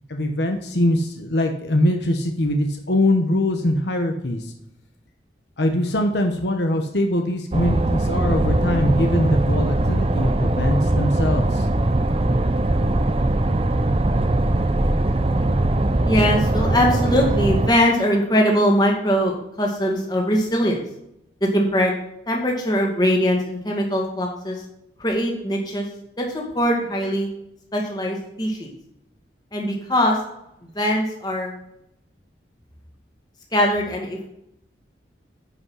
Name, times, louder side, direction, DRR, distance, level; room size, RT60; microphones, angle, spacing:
voice 1, 0.1-4.5 5.6-11.7, left 1 dB, 70° left, 4 dB, 1.1 m, -22 dB
sound 1, 7.5-17.7, right 1 dB, 30° right, 0.6 m, -20 dB
voice 2, 16.0-20.8 21.4-21.9 22.3-24.6 25.0-25.9 26.2-27.3 27.7-28.7 29.5-30.2 30.6-31.5 33.5-34.2, equal, 20° left, -1 dB, 2.1 m, -21 dB
10.5 x 5.7 x 5.6 m, 0.81 s
head